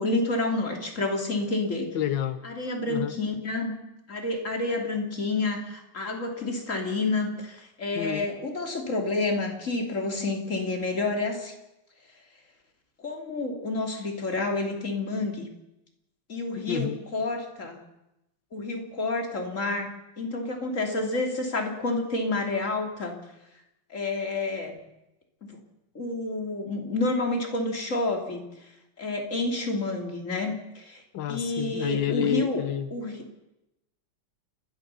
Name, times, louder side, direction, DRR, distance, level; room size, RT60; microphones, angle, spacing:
voice 1, 0.0-1.9 2.4-3.7 4.1-11.5 13.0-15.5 16.3-17.8 18.5-19.9 20.2-23.2 23.9-24.8 25.4-25.6 25.9-28.4 29.0-31.0 31.3-32.6 32.9-33.3, left 2 dB, 40° left, 2 dB, 3.3 m, -29 dB
voice 2, 1.9-2.4 2.9-3.2 7.9-8.3 16.6-17.0 31.1-32.9, left 10 dB, 80° left, 11 dB, 1.7 m, -29 dB
29.5 x 13.0 x 6.9 m, 0.91 s
omnidirectional pair, 2.0 m